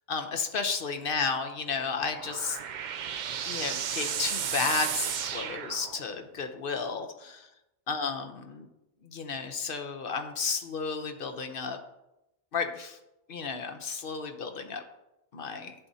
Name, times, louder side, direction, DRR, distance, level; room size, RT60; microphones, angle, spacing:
voice 1, 0.1-2.6 3.4-7.4 7.9-8.7 9.0-11.8 12.5-13.0 13.3-14.8 15.3-15.7, left 5 dB, 50° left, 6 dB, 0.9 m, -32 dB
sound 1, 1.8-6.3, right 8 dB, 60° right, 0.5 m, -34 dB
11.0 x 7.4 x 2.7 m, 0.92 s
omnidirectional pair, 1.2 m